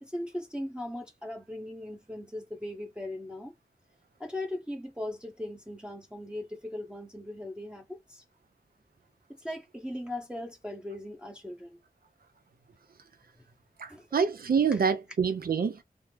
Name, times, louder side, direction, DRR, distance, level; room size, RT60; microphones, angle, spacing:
voice 1, 0.0-3.5 4.2-8.2 9.4-11.8 13.9-14.1 14.7-14.8, left 1 dB, 5° right, 0.7 m, -39 dB
voice 2, 13.8-15.8, right 6 dB, 80° right, 0.7 m, -26 dB
3.2 x 2.0 x 3.2 m
wide cardioid pair, 65°, 15 cm